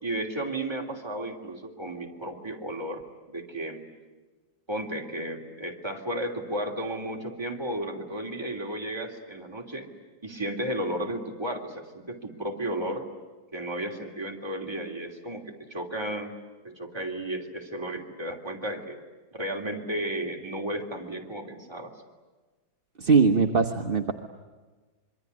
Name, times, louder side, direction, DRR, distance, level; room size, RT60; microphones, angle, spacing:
voice 1, 0.0-3.0 3.3-3.8 4.7-9.9 10.2-13.1 13.5-16.3 16.6-19.0 19.3-22.0, right 1 dB, 15° right, 0 dB, 3.1 m, -33 dB
voice 2, 23.0-24.1, right 4 dB, 35° right, 5 dB, 1.0 m, -21 dB
26.5 x 23.0 x 9.7 m, 1.3 s
omnidirectional pair, 2.1 m